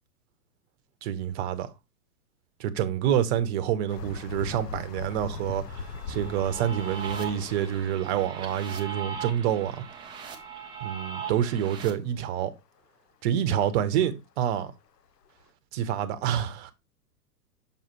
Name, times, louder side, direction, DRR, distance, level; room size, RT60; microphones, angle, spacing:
voice 1, 1.0-1.7 2.6-9.9 10.8-12.5 13.2-14.7 15.7-16.7, right 10 dB, 40° right, 0.9 m, -27 dB
sound 1, 3.9-8.2 10.2-10.3 10.5-10.6 11.5-11.6 14.0-14.1 14.7-14.8 15.3-15.4, left 4 dB, 75° left, 1.0 m, -39 dB
sound 2, 5.7-11.9, right 6 dB, 10° right, 0.5 m, -39 dB
6.5 x 5.2 x 3.0 m
hypercardioid pair, 115°, 49 cm